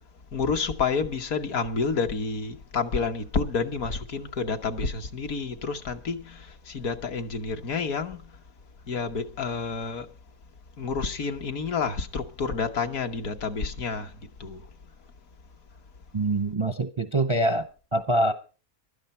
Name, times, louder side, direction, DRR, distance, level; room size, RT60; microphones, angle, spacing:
voice 1, 0.3-8.2 8.9-10.1 10.8-14.1 14.4-14.6, left 4 dB, 65° left, 1.6 m, -29 dB
voice 2, 16.1-17.7 17.9-18.3, right 1 dB, 35° right, 0.5 m, -24 dB
15.5 x 12.5 x 4.3 m
omnidirectional pair, 1.6 m